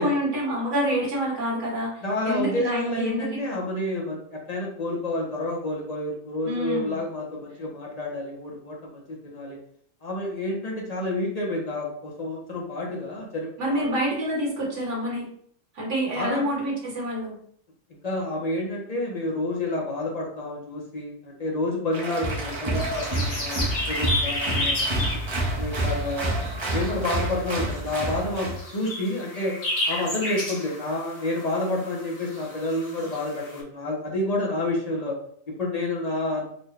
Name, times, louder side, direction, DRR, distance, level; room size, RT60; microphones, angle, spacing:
voice 1, 0.0-3.6 6.4-7.0 13.6-15.3 15.7-17.4, equal, 65° right, -4 dB, 1.8 m, -27 dB
voice 2, 2.0-9.6 10.0-13.9 16.1-16.4 17.9-25.2 25.6-26.4 26.7-29.6 29.9-35.2 35.5-36.5, left 1 dB, 40° left, -2 dB, 0.6 m, -29 dB
Applause, 21.9-28.6, right 1 dB, 30° right, 0.6 m, -28 dB
sound 1, 22.8-33.6, left 1 dB, 75° left, 1.4 m, -32 dB
4.0 x 2.2 x 3.1 m, 0.64 s
omnidirectional pair, 1.4 m